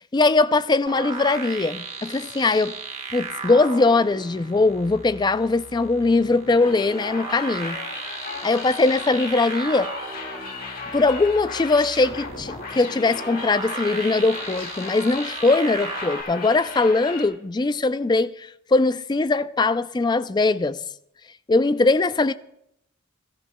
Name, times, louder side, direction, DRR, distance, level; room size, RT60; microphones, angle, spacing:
voice 1, 0.1-2.8 3.1-7.8 8.4-9.9 10.9-20.8 21.5-22.3, left 3 dB, 20° left, 0.4 m, -21 dB
sound 1, 0.9-16.2, right 4 dB, 35° right, 1.3 m, -36 dB
sound 2, 6.6-17.3, left 4 dB, 45° left, 1.9 m, -36 dB
23.0 x 13.5 x 2.2 m
head